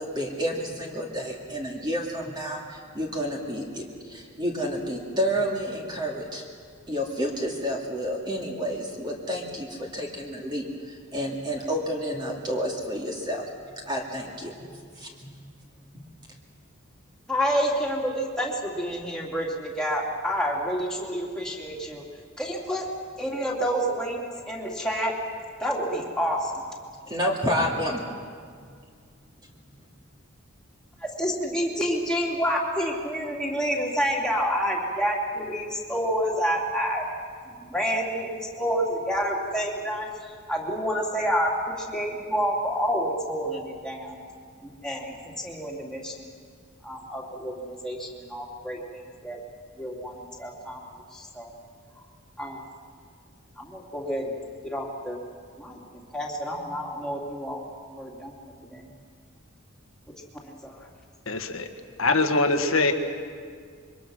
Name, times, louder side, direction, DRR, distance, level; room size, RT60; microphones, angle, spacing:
voice 1, 0.0-6.4 6.9-13.5 13.9-14.5 15.0-15.3 27.1-28.0, equal, 20° right, -1 dB, 2.4 m, -30 dB
voice 2, 17.3-22.0 22.4-22.9 23.2-25.1 25.6-26.6 31.0-37.1 37.6-40.1 40.5-41.5 41.8-44.2 44.6-46.3 46.8-49.4 49.8-50.8 51.1-51.5 52.4-52.6 53.6-55.2 55.6-55.8 56.1-57.6 57.9-58.3 58.6-58.9 60.4-60.7, equal, 5° left, -3 dB, 3.0 m, -29 dB
voice 3, 61.2-61.7 62.0-62.9, left 3 dB, 75° left, 6 dB, 1.7 m, -23 dB
26.5 x 23.5 x 6.4 m, 2.1 s
head